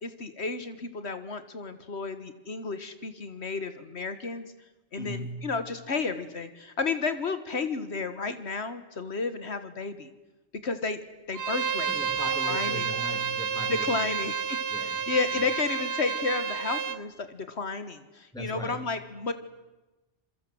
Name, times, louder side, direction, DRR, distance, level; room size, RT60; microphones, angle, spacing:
voice 1, 0.0-4.5 4.9-10.1 10.6-11.0 11.3-11.9 12.4-12.9 13.7-19.3, left 4 dB, 75° left, 11 dB, 1.8 m, -32 dB
voice 2, 4.9-5.6 11.9-14.3 14.7-15.4 18.3-18.9, equal, 5° left, 6 dB, 3.1 m, -39 dB
Bowed string instrument, 11.3-17.0, right 6 dB, 60° right, 1.4 m, -30 dB
27.5 x 23.0 x 7.8 m, 1.1 s
omnidirectional pair, 1.1 m